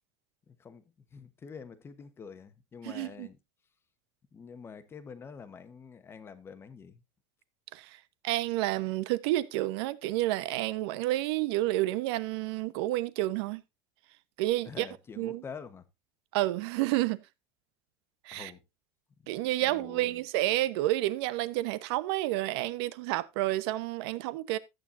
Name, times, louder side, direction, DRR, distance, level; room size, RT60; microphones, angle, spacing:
voice 1, 0.5-0.8 1.1-3.4 4.3-7.0 14.6-15.9 18.3-18.6 19.2-19.3 19.6-20.2, left 6 dB, 15° left, 1.1 m, -46 dB
voice 2, 2.8-3.3 7.7-7.9 8.2-13.6 14.4-14.9 15.2-15.4 16.3-17.2 18.3-18.5 19.3-24.6, right 16 dB, 70° right, 1.1 m, -30 dB
14.0 x 9.1 x 2.6 m
cardioid pair, 170°, 14 cm